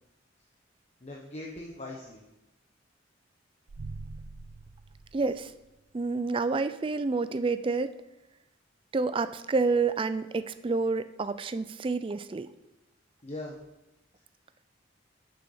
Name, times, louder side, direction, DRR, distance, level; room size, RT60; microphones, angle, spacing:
voice 1, 1.0-2.2 13.2-13.6, left 2 dB, 35° left, -2 dB, 0.9 m, -40 dB
sound 1, 3.7-5.9, right 3 dB, 75° right, 0.6 m, -44 dB
voice 2, 5.1-5.5 5.9-7.9 8.9-12.5, right 4 dB, 30° right, 13 dB, 0.4 m, -28 dB
7.1 x 6.3 x 5.6 m, 0.98 s
head